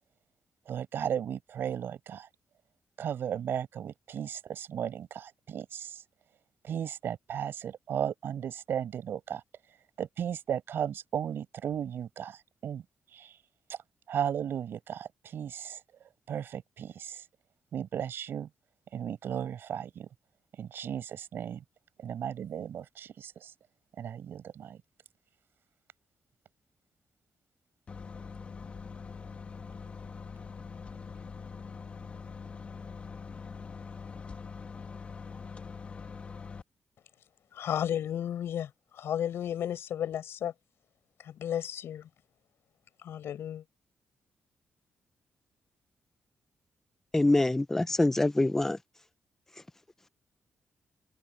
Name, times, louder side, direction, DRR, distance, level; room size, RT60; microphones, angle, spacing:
voice 1, 0.7-2.3 3.0-6.0 6.6-9.4 10.0-12.8 13.1-13.3 14.1-15.8 16.3-17.2 17.7-18.5 18.9-20.1 20.6-21.6 22.0-23.5 24.0-24.8, right 9 dB, 60° right, 6.3 m, -35 dB
sound 1, 27.9-36.6, left 5 dB, 30° left, 1.8 m, -43 dB
voice 2, 37.5-40.5 41.2-42.1 43.0-43.6, left 10 dB, 75° left, 7.3 m, -33 dB
voice 3, 47.1-48.8, left 2 dB, 10° left, 0.6 m, -25 dB
wide cardioid pair, 180°, 4 cm